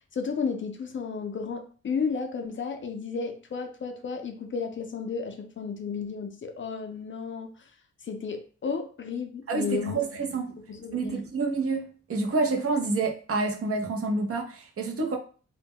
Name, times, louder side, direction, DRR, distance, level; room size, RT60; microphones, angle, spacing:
voice 1, 0.1-7.5 8.0-10.0 10.7-11.2, left 5 dB, 40° left, 0.4 m, -33 dB
voice 2, 9.5-10.6 10.9-15.2, right 3 dB, 50° right, 0.6 m, -28 dB
2.1 x 2.0 x 3.5 m
cardioid pair, 80°, 29 cm